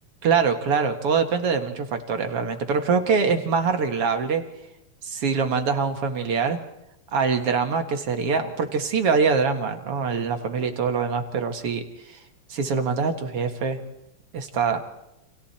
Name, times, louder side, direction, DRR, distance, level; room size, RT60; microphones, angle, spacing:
voice 1, 0.2-4.4 5.0-6.6 7.1-12.2 12.5-13.8 14.3-14.8, right 5 dB, 50° right, 5 dB, 2.4 m, -24 dB
30.0 x 27.5 x 4.4 m, 0.89 s
omnidirectional pair, 3.9 m